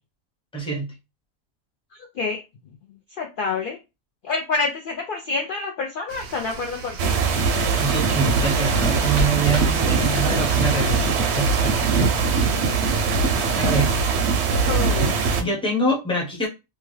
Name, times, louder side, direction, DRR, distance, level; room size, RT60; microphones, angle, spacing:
voice 1, 0.5-0.9 7.8-11.1 11.3-12.1 13.6-14.0 15.4-16.5, right 3 dB, 5° left, -1 dB, 0.7 m, -25 dB
voice 2, 3.2-3.8 4.2-7.3 14.5-15.1, left 4 dB, 70° left, 2 dB, 0.5 m, -27 dB
sound 1, 6.1-14.1, right 5 dB, 85° right, 1.0 m, -39 dB
sound 2, 7.0-15.4, right 4 dB, 65° right, 0.8 m, -21 dB
sound 3, 8.4-10.4, equal, 40° right, 0.4 m, -32 dB
2.8 x 2.3 x 3.1 m, 0.26 s
omnidirectional pair, 1.4 m